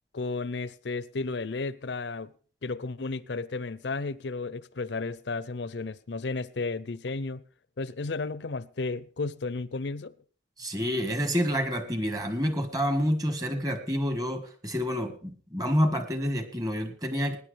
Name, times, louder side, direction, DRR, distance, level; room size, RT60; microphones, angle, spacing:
voice 1, 0.1-2.3 2.6-7.4 7.8-10.1, left 3 dB, 75° left, 0.6 m, -33 dB
voice 2, 10.6-17.4, equal, 20° right, 1.5 m, -28 dB
19.5 x 9.8 x 3.3 m
head